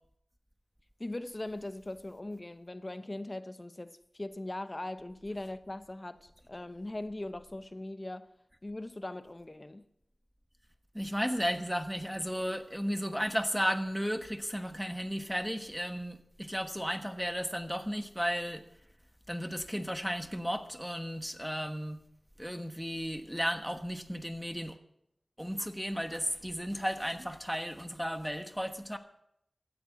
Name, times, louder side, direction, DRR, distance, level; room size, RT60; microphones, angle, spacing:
voice 1, 1.0-8.3 8.6-9.8, left 1 dB, 25° left, 0.9 m, -40 dB
voice 2, 10.9-18.6 19.3-22.0 22.4-24.8 25.4-29.0, equal, ahead, 1.2 m, -34 dB
16.0 x 9.6 x 7.4 m
wide cardioid pair, 95°, 0 cm